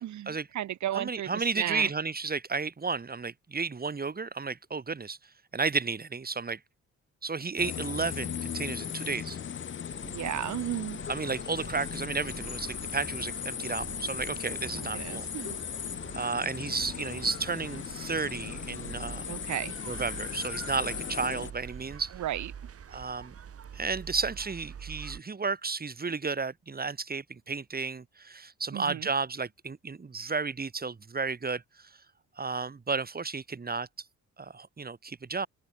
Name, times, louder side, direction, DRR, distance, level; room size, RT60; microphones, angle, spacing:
voice 1, 0.0-1.9 10.0-11.0 14.6-15.6 19.3-19.7 22.1-22.5 28.7-29.1, right 12 dB, 70° right, 2.0 m, -34 dB
voice 2, 0.9-5.2 5.5-6.6 7.2-9.4 11.1-15.2 16.1-19.2 19.9-22.1 22.9-23.3 23.7-31.9 32.4-33.9 34.4-35.5, right 4 dB, 30° right, 4.8 m, -33 dB
sound 1, 7.6-21.5, left 8 dB, 40° left, 0.9 m, -37 dB
sound 2, 9.9-25.2, right 8 dB, 50° right, 3.8 m, -46 dB
open air
cardioid pair, 90°, 30 cm